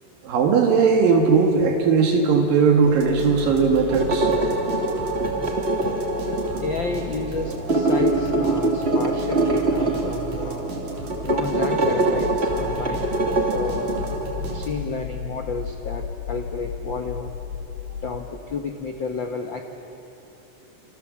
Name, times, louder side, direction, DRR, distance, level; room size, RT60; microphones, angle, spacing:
voice 1, 0.2-4.3, right 5 dB, 75° right, 3 dB, 3.3 m, -18 dB
sound 1, 2.8-15.0, right 1 dB, 55° right, 4.9 m, -35 dB
sound 2, 3.9-14.7, right 2 dB, 25° right, 1.6 m, -24 dB
voice 2, 6.3-10.7 11.2-14.0 14.5-17.3 18.0-19.6, left 4 dB, 65° left, 4 dB, 1.1 m, -31 dB
sound 3, 12.1-18.2, left 7 dB, 85° left, 3.5 m, -34 dB
28.5 x 26.5 x 7.4 m, 3.0 s
omnidirectional pair, 4.0 m